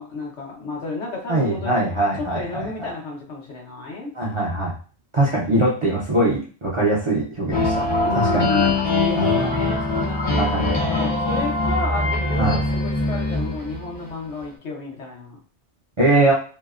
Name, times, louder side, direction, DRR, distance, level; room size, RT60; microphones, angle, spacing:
voice 1, 0.0-1.8 2.2-4.1 8.0-15.4, left 3 dB, 90° left, -1 dB, 1.1 m, -31 dB
voice 2, 1.3-2.9 4.1-4.7 5.1-7.8 8.1-8.5 9.2-9.8 10.4-10.9 12.4-12.6 16.0-16.3, right 1 dB, 45° right, -5 dB, 0.4 m, -22 dB
sound 1, 7.5-14.1, left 2 dB, 30° left, 0.6 m, -22 dB
2.7 x 2.0 x 2.3 m, 0.38 s
omnidirectional pair, 1.2 m